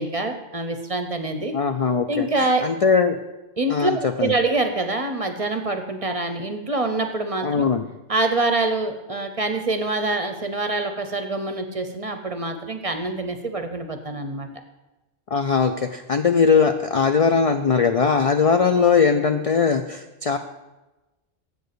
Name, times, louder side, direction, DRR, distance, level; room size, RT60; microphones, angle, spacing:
voice 1, 0.0-1.6 2.1-2.6 3.6-7.7 8.1-14.5, right 2 dB, 35° right, 7 dB, 0.7 m, -25 dB
voice 2, 1.5-2.3 2.6-3.2 3.7-4.3 7.4-7.8 15.3-20.4, left 5 dB, 55° left, 7 dB, 0.4 m, -20 dB
8.0 x 6.6 x 6.7 m, 1.1 s
omnidirectional pair, 1.2 m